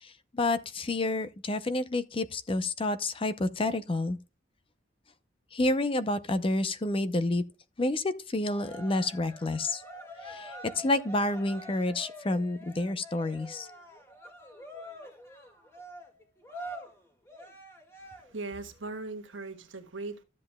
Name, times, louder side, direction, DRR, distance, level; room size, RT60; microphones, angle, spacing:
voice 1, 0.0-4.2 5.5-7.4 7.8-9.8 10.2-13.7, left 2 dB, 30° left, 0.6 m, -29 dB
Cheering, 8.4-18.5, equal, 15° left, 1.9 m, -46 dB
voice 2, 18.0-20.2, right 3 dB, 85° right, 1.3 m, -39 dB
13.0 x 7.6 x 2.2 m
head